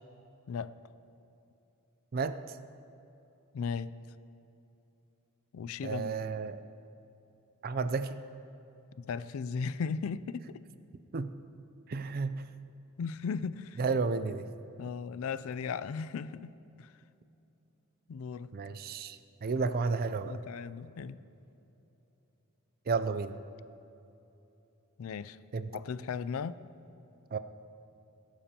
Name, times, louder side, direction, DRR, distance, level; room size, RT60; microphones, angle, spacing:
voice 1, 3.5-4.0 5.5-6.1 9.0-10.6 13.0-13.8 14.8-16.9 18.1-18.6 20.2-21.2 25.0-25.4 25.7-26.6, left 5 dB, 65° left, 16 dB, 0.4 m, -37 dB
voice 2, 5.8-6.6 7.6-8.2 11.1-11.3 11.9-12.4 13.8-14.4 18.5-20.4 22.9-23.4 25.5-25.7 27.3-27.4, right 4 dB, 45° right, 12 dB, 0.4 m, -32 dB
18.5 x 11.5 x 2.9 m, 2.9 s
head